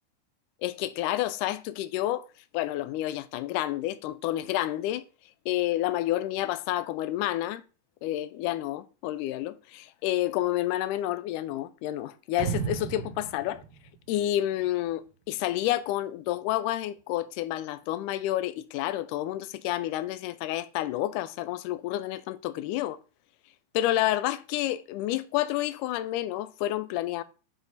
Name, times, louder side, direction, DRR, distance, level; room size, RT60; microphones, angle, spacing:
voice 1, 0.6-2.3 2.5-5.0 5.5-7.6 8.0-13.6 14.1-23.0 23.7-27.2, left 14 dB, 80° left, 1.9 m, -29 dB
sound 1, 12.4-14.9, right 7 dB, 85° right, 3.2 m, -34 dB
9.7 x 4.2 x 4.0 m
omnidirectional pair, 4.1 m